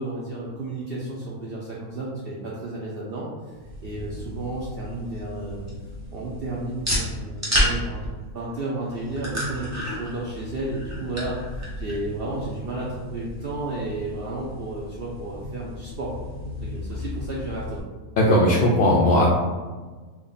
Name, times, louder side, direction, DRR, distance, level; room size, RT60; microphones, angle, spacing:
voice 1, 0.0-3.5 3.8-5.6 6.1-8.0 8.3-16.3 16.6-17.8, right 2 dB, 80° right, -5 dB, 0.5 m, -32 dB
sound 1, 3.5-17.8, equal, 15° right, 0.6 m, -32 dB
voice 2, 18.2-19.3, left 1 dB, 80° left, -4 dB, 0.5 m, -18 dB
3.6 x 2.1 x 3.8 m, 1.4 s
omnidirectional pair, 1.6 m